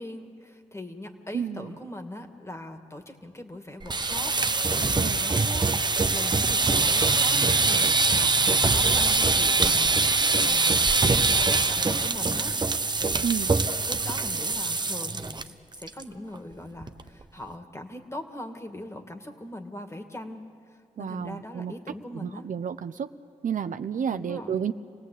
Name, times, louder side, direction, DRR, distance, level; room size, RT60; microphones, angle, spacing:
voice 1, 0.0-10.7 11.0-13.2 13.9-20.5 21.0-22.5 24.1-24.7, left 1 dB, 20° left, 5 dB, 2.4 m, -41 dB
voice 2, 1.3-1.7 5.0-5.2 13.2-13.6 21.0-21.7 22.1-23.1 23.4-24.7, right 7 dB, 70° right, 11 dB, 0.7 m, -31 dB
sound 1, 3.8-15.4 15.7-16.0 16.3-16.4 16.8-17.2, right 3 dB, 30° right, 0.9 m, -23 dB
27.5 x 18.0 x 8.5 m, 2.3 s
cardioid pair, 55°, 14 cm